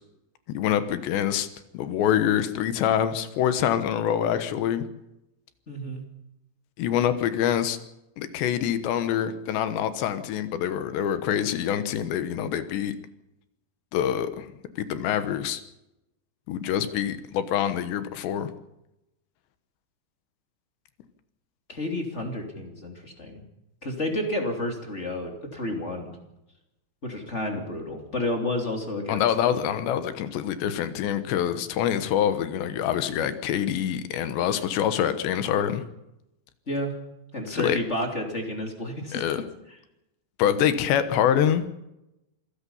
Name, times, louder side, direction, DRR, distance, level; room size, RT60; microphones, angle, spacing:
voice 1, 0.5-1.5 1.7-4.8 6.8-7.8 8.2-13.0 13.9-14.5 14.8-15.6 16.5-18.5 29.1-35.8 37.5-37.8 39.1-39.4 40.4-41.7, left 9 dB, 80° left, 11 dB, 3.4 m, -25 dB
voice 2, 5.7-6.0 21.7-23.4 23.8-26.2 27.0-29.6 36.7-36.9 37.3-39.4, left 1 dB, 20° left, 3 dB, 2.5 m, -31 dB
27.0 x 17.0 x 5.6 m, 0.90 s
omnidirectional pair, 5.1 m